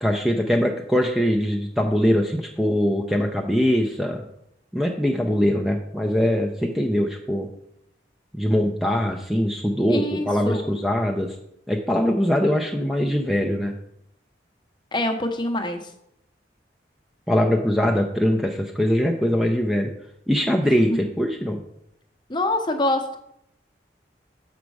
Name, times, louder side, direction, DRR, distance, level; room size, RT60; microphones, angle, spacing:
voice 1, 0.0-4.2 4.7-7.5 8.3-11.4 11.7-13.7 17.3-19.9 20.3-21.6, equal, ahead, 1 dB, 0.5 m, -22 dB
voice 2, 9.9-10.7 14.9-15.9 20.6-21.0 22.3-23.2, left 1 dB, 25° left, 6 dB, 0.8 m, -25 dB
7.3 x 5.1 x 4.7 m, 0.77 s
head